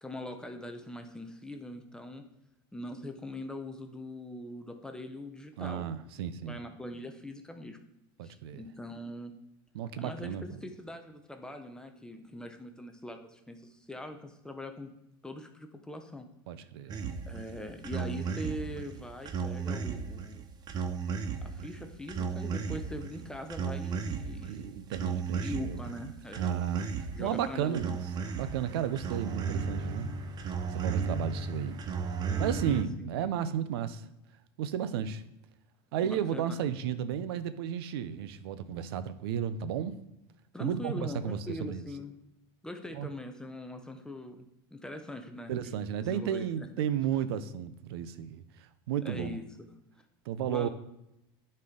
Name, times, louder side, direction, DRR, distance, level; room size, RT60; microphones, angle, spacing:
voice 1, 0.0-2.3 2.7-5.9 6.4-7.8 8.2-9.3 10.0-10.4 10.6-14.9 15.2-16.3 17.3-20.5 21.4-24.8 25.4-26.5 27.1-28.0 32.7-33.1 36.0-36.6 40.5-42.2 42.6-46.7 49.0-49.4 50.5-50.7, left 1 dB, 5° left, 5 dB, 0.8 m, -42 dB
voice 2, 5.6-6.6 8.2-8.6 9.7-10.6 16.5-17.0 24.5-26.1 26.4-27.9 28.4-30.1 30.7-31.8 32.2-34.1 34.6-35.2 35.9-40.0 40.6-41.9 42.9-43.1 45.5-49.4 50.3-50.7, right 9 dB, 85° right, 13 dB, 0.6 m, -33 dB
sound 1, 16.9-32.8, right 5 dB, 30° right, 0.7 m, -35 dB
9.5 x 4.4 x 3.8 m, 0.86 s
supercardioid pair, 120°, 13 cm